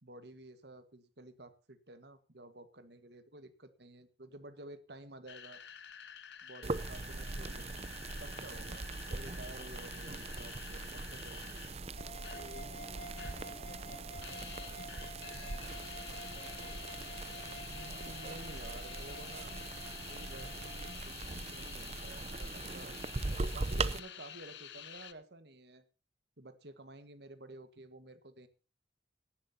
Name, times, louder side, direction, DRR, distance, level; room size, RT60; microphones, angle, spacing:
voice 1, 0.0-5.6 6.4-7.9 8.2-11.6 12.3-12.7 17.7-19.6 20.1-23.0 23.5-25.8 26.4-28.5, right 2 dB, 65° right, 10 dB, 1.6 m, -52 dB
sound 1, 5.3-12.6 12.9-13.5 13.8-25.1, left 9 dB, 70° left, 0.9 m, -50 dB
sound 2, 6.6-24.0, right 3 dB, 35° right, 0.6 m, -41 dB
sound 3, 12.0-21.0, left 1 dB, 40° left, 1.5 m, -50 dB
voice 2, 12.4-13.0 13.3-17.2, equal, 5° left, 3 dB, 2.7 m, -63 dB
17.5 x 10.5 x 2.8 m, 0.34 s
head